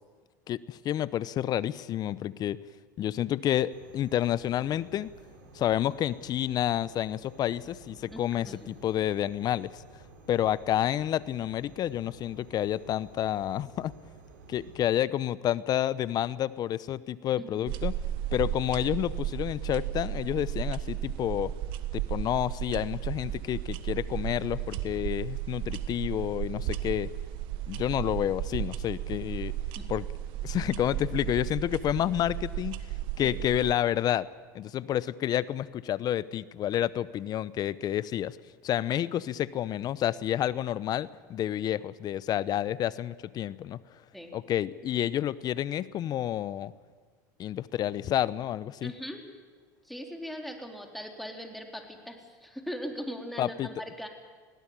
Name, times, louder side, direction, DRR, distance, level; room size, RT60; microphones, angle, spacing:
voice 1, 0.5-2.6 3.0-5.1 5.5-9.8 10.3-13.9 14.5-17.9 18.3-21.5 21.9-27.1 27.7-29.5 29.9-30.0 30.4-32.8 33.2-34.3 34.5-38.4 38.6-43.8 44.3-46.7 47.4-48.9 53.4-53.7, left 11 dB, 45° left, 18 dB, 0.8 m, -29 dB
sound 1, 3.7-14.8, right 3 dB, 80° right, 4.1 m, -53 dB
voice 2, 8.1-8.7 17.4-17.6 29.8-29.9 33.2-33.4 44.1-44.4 48.8-49.2 49.8-54.1, equal, ahead, 2 dB, 3.8 m, -40 dB
sound 2, 17.7-33.7, right 12 dB, 60° right, 1.3 m, -34 dB
21.0 x 17.0 x 8.8 m, 1.5 s
hypercardioid pair, 85°, 10 cm